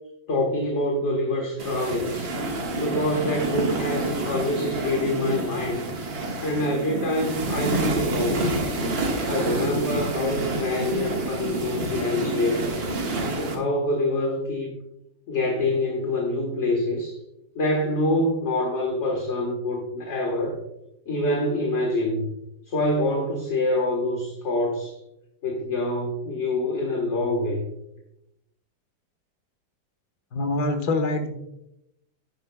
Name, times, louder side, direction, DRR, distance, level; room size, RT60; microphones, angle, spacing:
voice 1, 0.3-2.3 2.8-5.9 6.4-8.5 9.3-12.7 13.3-14.7 15.3-17.1 17.5-20.6 21.1-22.3 22.7-25.0 25.4-27.6, left 1 dB, 40° left, 0 dB, 1.6 m, -26 dB
sound 1, 1.6-13.6, right 2 dB, 90° right, 2.4 m, -28 dB
voice 2, 30.3-31.3, left 2 dB, 55° left, 6 dB, 1.7 m, -25 dB
11.5 x 10.0 x 2.3 m, 0.85 s
omnidirectional pair, 2.1 m